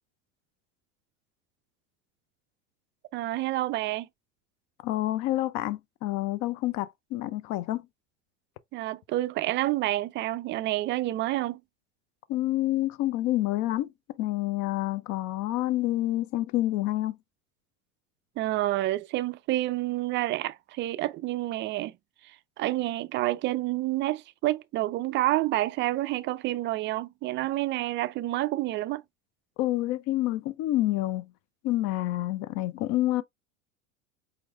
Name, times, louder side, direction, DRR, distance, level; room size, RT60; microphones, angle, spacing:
voice 1, 3.1-4.1 8.7-11.6 18.4-21.9 22.6-29.0, right 16 dB, 30° right, 0.4 m, -28 dB
voice 2, 4.8-7.9 12.3-13.9 14.2-17.2 29.6-31.3 31.6-33.2, left 15 dB, 45° left, 0.6 m, -28 dB
4.6 x 3.7 x 2.4 m
hypercardioid pair, 75°, 38 cm